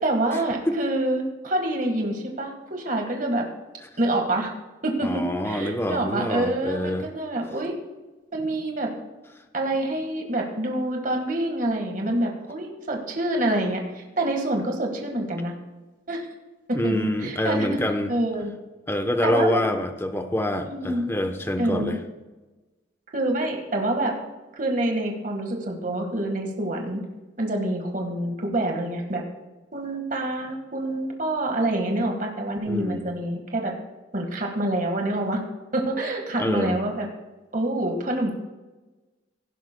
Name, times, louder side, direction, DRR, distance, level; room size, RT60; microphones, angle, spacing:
voice 1, 0.0-3.5 4.0-4.5 4.8-7.7 8.3-8.9 9.5-15.5 16.1-16.2 16.7-17.7 18.1-18.5 19.2-19.7 20.6-21.0 21.6-22.0 23.1-24.1 24.5-27.0 27.4-29.2 29.7-33.7 34.1-35.4 35.7-37.1 37.5-38.3, right 1 dB, 45° right, 2 dB, 1.6 m, -26 dB
voice 2, 5.0-7.1 16.7-18.1 18.9-22.0 32.7-33.0 36.4-36.8, left 1 dB, 15° left, 6 dB, 0.8 m, -26 dB
17.0 x 11.5 x 2.2 m, 1.2 s
head